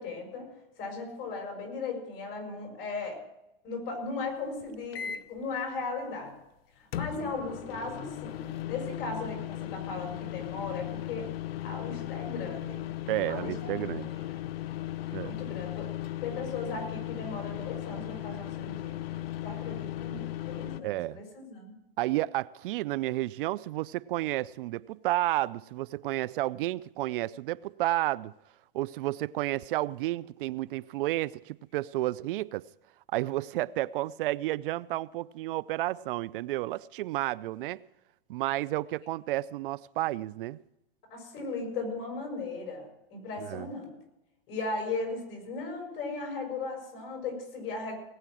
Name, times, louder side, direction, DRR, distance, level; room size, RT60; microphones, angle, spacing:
voice 1, 0.0-3.2 3.6-6.3 6.8-11.3 11.6-12.8 13.3-14.4 15.2-15.9 16.2-19.0 19.4-21.7 41.1-44.0 44.5-48.0, left 3 dB, 45° left, 6.3 m, -37 dB
sound 1, 4.9-5.4 6.9-20.8, left 13 dB, 80° left, 0.8 m, -37 dB
voice 2, 13.1-14.1 15.1-15.3 20.8-21.2 22.0-28.3 28.7-32.7 33.1-37.8 38.3-40.6 43.4-43.7, right 16 dB, 65° right, 0.5 m, -31 dB
19.0 x 8.8 x 6.2 m
supercardioid pair, 145°, 29 cm